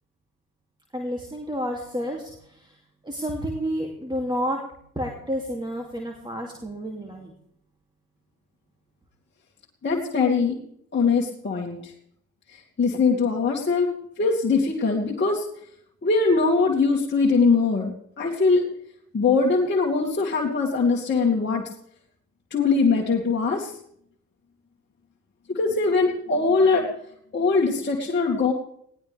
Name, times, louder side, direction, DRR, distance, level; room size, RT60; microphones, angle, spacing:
voice 1, 0.9-2.7 3.0-4.6 4.9-7.3, equal, 10° right, 1 dB, 2.7 m, -30 dB
voice 2, 9.8-10.6 10.9-11.9 12.5-13.9 14.2-15.5 16.0-18.7 19.1-21.6 22.5-23.7 25.5-26.9 27.3-28.5, left 4 dB, 25° left, -3 dB, 2.5 m, -22 dB
20.0 x 17.5 x 3.5 m, 0.71 s
hypercardioid pair, 55°, 40 cm